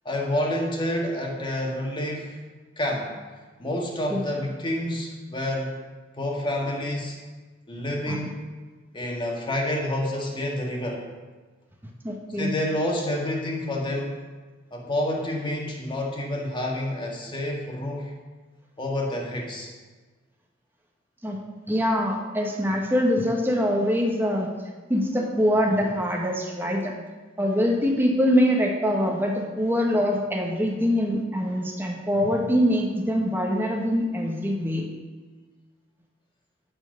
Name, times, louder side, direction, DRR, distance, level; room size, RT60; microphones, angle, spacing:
voice 1, 0.0-2.4 2.8-3.1 3.6-5.8 6.2-7.2 7.7-8.4 8.9-11.0 12.4-14.2 14.7-18.1 18.8-19.7, left 1 dB, 25° left, -1 dB, 1.7 m, -28 dB
voice 2, 12.0-12.5 21.2-21.4 21.7-24.5 24.9-26.9 27.4-34.8, equal, 10° right, 0 dB, 1.4 m, -24 dB
10.5 x 4.6 x 6.6 m, 1.3 s
head